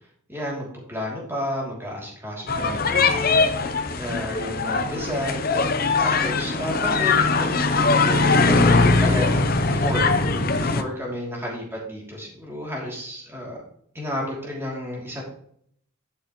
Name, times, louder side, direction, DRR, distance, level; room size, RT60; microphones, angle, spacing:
voice 1, 0.3-3.4 4.0-5.5 6.0-10.1 10.6-13.6 13.9-15.2, equal, 10° right, -3 dB, 3.0 m, -32 dB
sound 1, 2.5-10.8, left 3 dB, 45° left, 0.7 m, -21 dB
11.5 x 6.5 x 3.1 m, 0.65 s
head